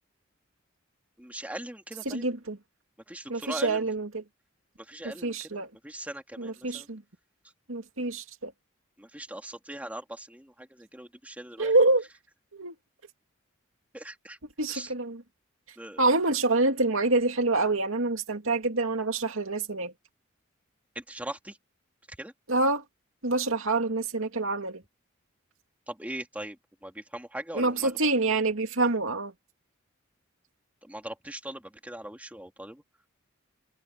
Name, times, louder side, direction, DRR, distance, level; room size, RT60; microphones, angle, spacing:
voice 1, 1.2-2.2 3.1-3.8 4.8-6.9 9.0-11.7 13.9-14.4 14.7-14.9 15.8-16.1 20.9-21.6 22.1-22.3 25.9-28.0 30.8-32.8, right 1 dB, 5° right, 2.7 m, -40 dB
voice 2, 2.1-2.6 3.3-4.2 5.2-5.7 6.4-7.0 7.7-8.5 11.6-12.0 12.5-12.7 14.6-15.2 16.0-19.9 22.5-22.8 23.2-24.8 27.5-29.3, right 2 dB, 75° right, 2.5 m, -26 dB
head